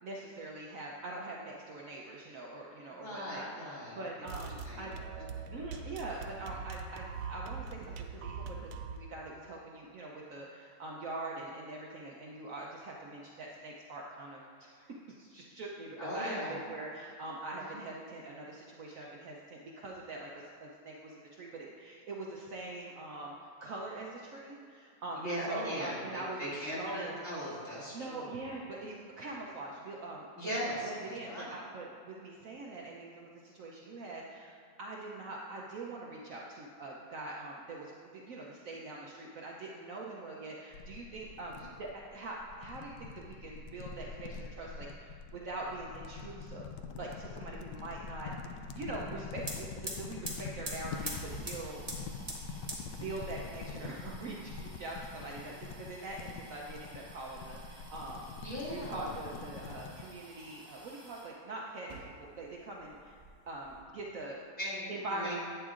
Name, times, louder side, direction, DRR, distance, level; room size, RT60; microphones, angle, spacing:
voice 1, 0.0-4.9 5.5-27.1 27.9-30.2 30.6-46.7 47.0-51.8 52.9-58.3 58.7-63.2 63.5-64.4 64.9-65.3, right 2 dB, 60° right, -2 dB, 0.9 m, -43 dB
voice 2, 3.0-4.0 4.7-4.8 16.0-16.5 17.7-17.8 25.2-28.3 30.4-31.5 58.4-59.0 64.6-65.3, equal, 40° left, -9 dB, 2.9 m, -38 dB
sound 1, 4.3-9.1, right 5 dB, 85° right, 1.3 m, -42 dB
sound 2, 40.7-60.1, left 5 dB, 80° left, 1.2 m, -45 dB
sound 3, 49.1-49.2 49.4-61.3 61.8-62.5 62.8-63.8, right 1 dB, 25° right, 1.3 m, -47 dB
11.0 x 8.9 x 2.5 m, 2.2 s
omnidirectional pair, 1.9 m